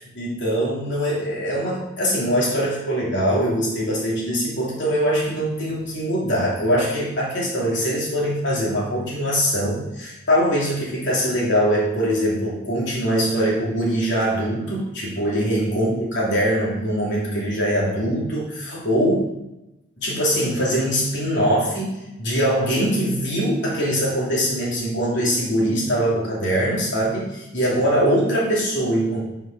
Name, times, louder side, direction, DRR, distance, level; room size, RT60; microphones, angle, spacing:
voice 1, 0.1-19.3 20.0-29.2, equal, 60° left, -5 dB, 3.0 m, -22 dB
7.6 x 5.6 x 6.1 m, 0.94 s
head